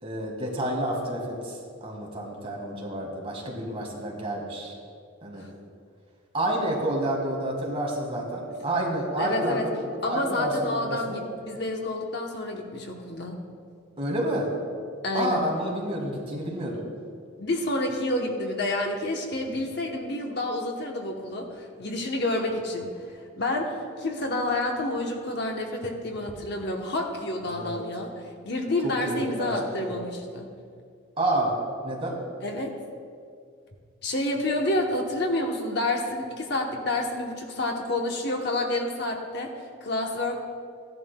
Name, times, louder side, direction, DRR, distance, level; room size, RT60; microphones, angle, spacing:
voice 1, 0.0-4.8 5.2-5.4 6.3-9.8 10.1-11.2 14.0-14.5 15.1-16.8 27.5-27.8 28.8-29.5 29.8-29.9 31.2-31.5 31.8-32.2, right 1 dB, 30° right, -2 dB, 1.7 m, -29 dB
voice 2, 9.1-9.7 10.0-13.4 15.0-15.4 17.4-23.7 24.0-28.1 28.4-30.5 32.4-32.8 34.0-39.5 39.8-40.4, left 1 dB, 55° left, 2 dB, 0.9 m, -29 dB
15.0 x 11.0 x 2.2 m, 2.2 s
head